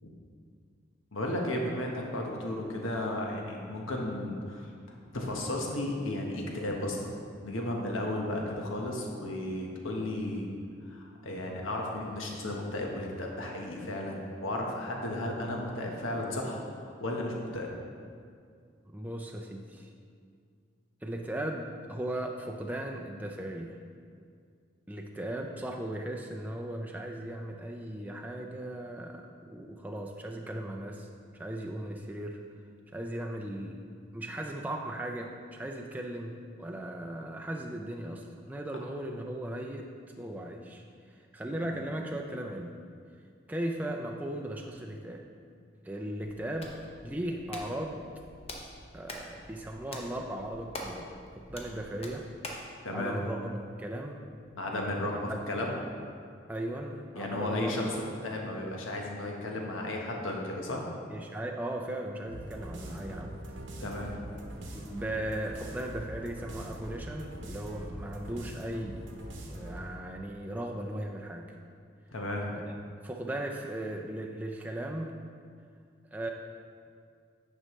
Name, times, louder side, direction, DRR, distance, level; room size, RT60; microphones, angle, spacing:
voice 1, 1.1-4.7 5.1-7.1 7.4-10.5 10.9-17.7 41.6-41.7 52.8-53.2 54.6-55.7 57.1-60.8 63.8-64.1 72.1-72.6, left 1 dB, 90° left, 0 dB, 1.1 m, -34 dB
voice 2, 18.8-19.9 21.0-23.8 24.9-31.1 31.3-32.4 32.9-33.8 34.1-39.9 40.2-42.8 43.5-45.2 45.8-46.7 47.0-48.0 48.9-52.3 52.9-54.2 55.2-55.4 56.5-57.8 61.1-63.4 64.7-69.1 69.5-71.5 72.5-72.6 73.0-75.2 76.1-76.3, right 1 dB, 10° right, 1 dB, 0.3 m, -37 dB
Hands, 46.2-52.7, left 1 dB, 30° left, 0.7 m, -45 dB
sound 1, 62.3-70.0, right 1 dB, 70° right, 0.9 m, -42 dB
9.7 x 5.4 x 3.1 m, 2.2 s
head